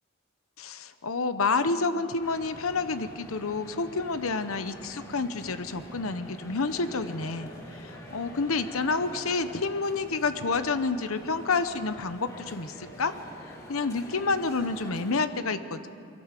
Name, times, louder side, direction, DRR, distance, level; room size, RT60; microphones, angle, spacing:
voice 1, 0.6-7.5 8.1-13.1 13.7-15.9, left 4 dB, 85° left, 11 dB, 0.9 m, -29 dB
sound 1, 2.2-15.2, equal, 20° left, 4.4 m, -46 dB
23.5 x 17.0 x 7.6 m, 2.4 s
head